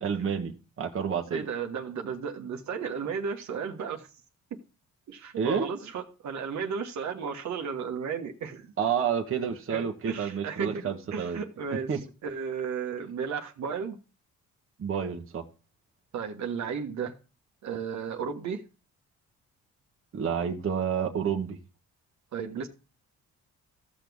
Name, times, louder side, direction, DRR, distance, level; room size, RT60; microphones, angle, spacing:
voice 1, 0.0-1.4 5.4-5.7 8.8-11.4 11.9-12.0 14.8-15.4 20.1-21.6, right 7 dB, 45° right, 1.4 m, -29 dB
voice 2, 1.3-4.1 5.1-8.7 9.7-14.0 16.1-17.2 17.6-18.6 22.3-22.7, right 6 dB, 65° right, 1.5 m, -34 dB
15.0 x 6.1 x 3.6 m
cardioid pair, 90°, 30 cm